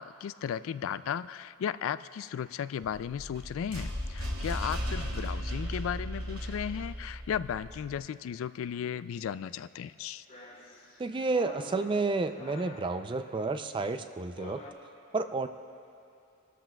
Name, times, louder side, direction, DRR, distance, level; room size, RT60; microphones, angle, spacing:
voice 1, 0.0-10.2, left 8 dB, 70° left, 16 dB, 0.3 m, -35 dB
sound 1, 2.9-8.0, equal, 90° right, 2.4 m, -36 dB
sound 2, 6.7-7.1 7.9-8.1 10.3-14.7, left 1 dB, 45° left, 1.8 m, -50 dB
voice 2, 11.0-14.6 15.1-15.5, right 3 dB, 25° right, 9 dB, 0.4 m, -30 dB
27.0 x 13.5 x 2.3 m, 2.6 s
head